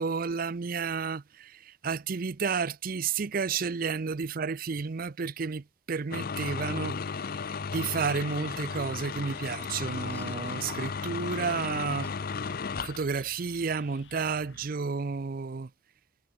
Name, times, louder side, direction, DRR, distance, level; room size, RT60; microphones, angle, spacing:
voice 1, 0.0-7.0 7.7-12.1 12.8-15.7, right 5 dB, 50° right, 0.5 m, -31 dB
sound 1, 6.1-13.0, left 5 dB, 55° left, 0.6 m, -35 dB
sound 2, 7.6-14.7, left 3 dB, 80° left, 3.3 m, -54 dB
Chuckle chortle, 8.0-9.4 9.6-11.3 12.0-12.6, left 1 dB, 10° left, 3.9 m, -54 dB
head